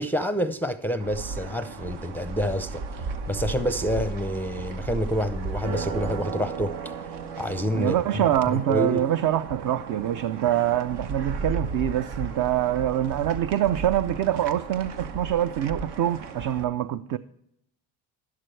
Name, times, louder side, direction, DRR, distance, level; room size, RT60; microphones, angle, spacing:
voice 1, 0.0-8.0 8.3-9.1, equal, 5° left, 0.5 m, -28 dB
sound 1, 1.0-16.6, right 4 dB, 75° right, 1.2 m, -35 dB
voice 2, 7.7-17.2, right 11 dB, 50° right, 0.6 m, -25 dB
12.0 x 11.5 x 3.2 m
supercardioid pair, 95°, 41 cm